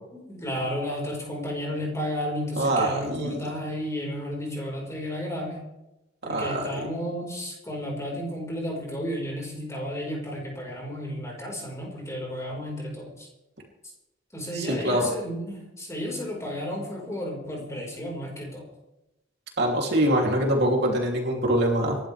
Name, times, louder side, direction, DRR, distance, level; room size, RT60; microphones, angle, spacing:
voice 1, 0.1-5.6 6.2-13.3 14.3-18.6, equal, 15° left, -1 dB, 4.9 m, -32 dB
voice 2, 2.6-3.4 6.3-6.7 14.5-15.1 19.6-22.0, right 1 dB, 55° right, -1 dB, 3.2 m, -24 dB
27.5 x 12.5 x 3.5 m, 0.94 s
head